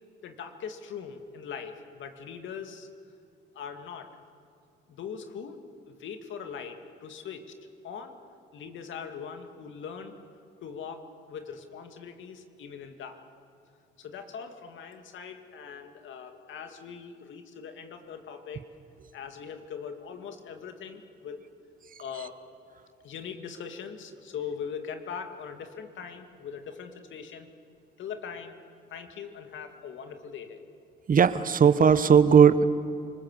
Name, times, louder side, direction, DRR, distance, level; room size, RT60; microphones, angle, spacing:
voice 1, 0.2-2.9 3.5-4.1 4.9-5.6 5.9-7.4 7.8-8.2 8.5-10.1 10.6-13.2 14.0-18.7 19.1-21.4 22.0-22.4 23.0-27.5 28.0-28.6 28.9-30.6, left 7 dB, 75° left, 6 dB, 2.3 m, -41 dB
voice 2, 31.1-32.6, right 7 dB, 45° right, 14 dB, 1.1 m, -18 dB
29.5 x 20.5 x 7.5 m, 2.6 s
cardioid pair, 90°, 20 cm